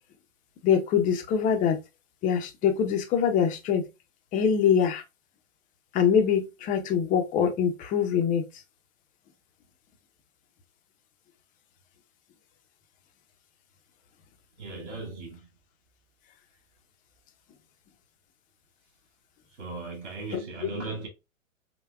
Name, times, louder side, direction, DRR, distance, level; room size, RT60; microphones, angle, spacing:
voice 1, 0.6-1.8 2.2-3.8 4.3-5.0 5.9-8.4 20.6-20.7, left 7 dB, 20° left, 0.6 m, -24 dB
voice 2, 14.6-15.5 19.6-21.1, right 3 dB, 60° right, 2.3 m, -37 dB
5.4 x 2.2 x 2.3 m
hypercardioid pair, 120°, 40 cm